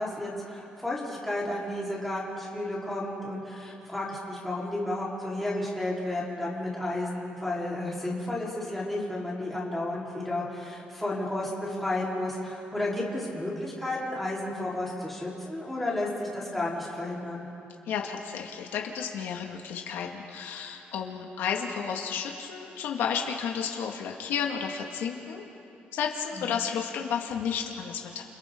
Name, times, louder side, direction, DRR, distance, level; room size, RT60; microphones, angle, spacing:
voice 1, 0.0-17.4 26.3-26.5, left 1 dB, 5° left, -7 dB, 4.2 m, -32 dB
voice 2, 17.9-25.5 25.9-28.2, left 7 dB, 85° left, 1 dB, 2.1 m, -32 dB
30.0 x 28.0 x 3.9 m, 2.8 s
cardioid pair, 165°, 4 cm